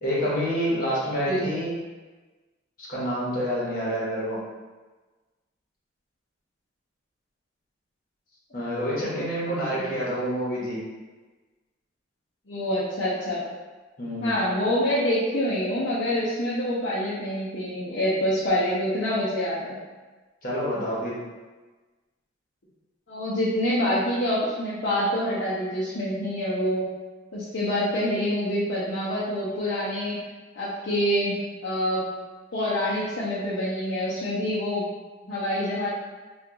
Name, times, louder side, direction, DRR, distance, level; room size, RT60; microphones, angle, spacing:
voice 1, 0.0-1.7 2.8-4.4 8.5-10.8 14.0-14.4 20.4-21.2, equal, 50° left, -7 dB, 1.1 m, -28 dB
voice 2, 12.5-13.4 14.2-19.8 23.1-26.9 27.3-30.2 30.5-32.0 32.5-34.8 35.3-35.9, equal, 65° left, -10 dB, 0.7 m, -26 dB
2.9 x 2.4 x 3.6 m, 1.3 s
head